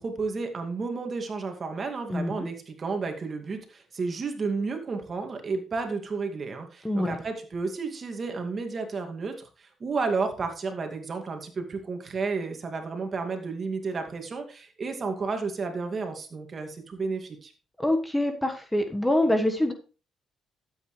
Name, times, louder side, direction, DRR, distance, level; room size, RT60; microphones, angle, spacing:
voice 1, 0.0-17.5, right 4 dB, 40° right, 5 dB, 2.3 m, -32 dB
voice 2, 6.8-7.2 17.8-19.7, left 1 dB, 10° left, 6 dB, 1.4 m, -25 dB
13.0 x 8.3 x 3.3 m, 0.35 s
cardioid pair, 90°, 0 cm